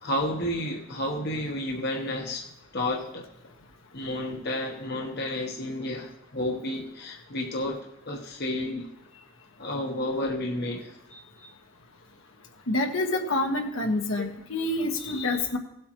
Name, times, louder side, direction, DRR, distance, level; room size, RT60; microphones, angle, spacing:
voice 1, 0.0-2.4 2.7-3.3 3.9-7.8 8.1-8.9 9.6-11.0, left 1 dB, 50° left, 0 dB, 1.1 m, -31 dB
voice 2, 12.7-15.6, left 2 dB, 75° left, 2 dB, 1.4 m, -27 dB
17.0 x 8.0 x 3.1 m, 0.81 s
head